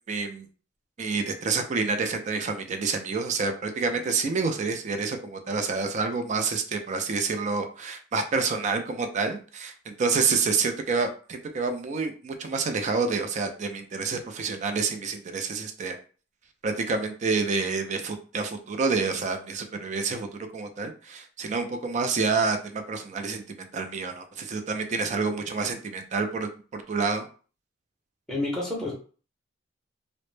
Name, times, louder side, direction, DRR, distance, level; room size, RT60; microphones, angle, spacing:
voice 1, 0.1-0.5 1.0-16.0 16.6-27.3, right 4 dB, 40° right, 7 dB, 0.3 m, -28 dB
voice 2, 28.3-28.9, left 2 dB, ahead, -5 dB, 0.6 m, -29 dB
2.0 x 2.0 x 3.1 m, 0.39 s
head